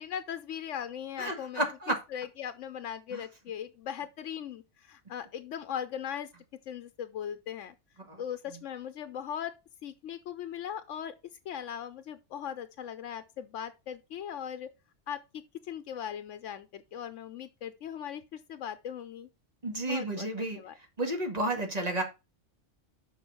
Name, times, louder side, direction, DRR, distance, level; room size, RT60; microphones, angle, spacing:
voice 1, 0.0-1.6 1.9-6.3 6.7-7.7 8.2-9.5 9.8-11.1 11.5-14.7 15.1-15.2 15.6-19.3 19.9-20.7, left 9 dB, 80° left, 1.0 m, -39 dB
voice 2, 1.2-2.0 3.1-3.2 8.1-8.2 19.6-20.6 21.0-22.0, right 1 dB, 35° right, 2.0 m, -31 dB
6.2 x 5.7 x 5.3 m
omnidirectional pair, 1.2 m